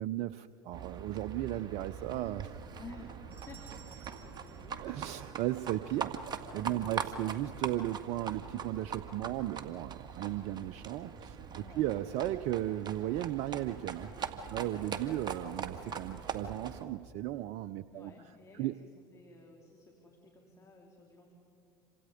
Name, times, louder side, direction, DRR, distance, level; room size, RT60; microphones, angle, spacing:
voice 1, 0.0-2.6 4.8-6.1 6.5-11.4 11.8-14.1 14.5-18.1 18.5-18.7, right 14 dB, 60° right, 13 dB, 0.7 m, -35 dB
Livestock farm animals working animals, 0.7-16.8, right 6 dB, 35° right, 2.1 m, -42 dB
voice 2, 2.8-4.9 6.6-7.1 11.6-11.9 14.5-14.9 17.9-18.8 19.1-21.3, left 3 dB, 25° left, 1 dB, 3.7 m, -54 dB
sound 1, 3.3-5.7, right 7 dB, 15° right, 6.7 m, -59 dB
28.0 x 26.5 x 5.1 m, 2.6 s
hypercardioid pair, 85°, 12 cm